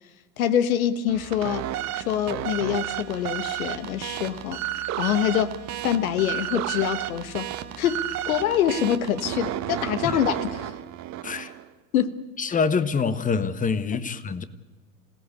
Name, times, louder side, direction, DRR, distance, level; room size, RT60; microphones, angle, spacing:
voice 1, 0.4-1.7 1.9-4.6 5.0-5.5 5.8-7.5 7.8-10.7 11.9-12.2, left 10 dB, 60° left, 1.5 m, -25 dB
sound 1, 1.1-11.7, right 12 dB, 35° right, 1.4 m, -32 dB
voice 2, 12.4-14.4, left 5 dB, 15° left, 1.4 m, -25 dB
26.5 x 18.5 x 8.4 m
figure-of-eight pair, 85°, 47 cm